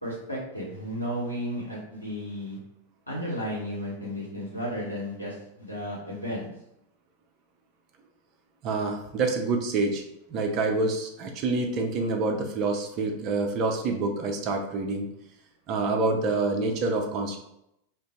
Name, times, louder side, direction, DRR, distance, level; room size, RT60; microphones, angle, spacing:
voice 1, 0.0-2.6 3.1-6.5, equal, 85° left, -5 dB, 1.3 m, -33 dB
voice 2, 8.6-10.0 10.3-15.1 15.7-17.4, right 3 dB, 40° right, 3 dB, 0.6 m, -27 dB
2.6 x 2.5 x 3.6 m, 0.80 s
figure-of-eight pair, 90°, 0 cm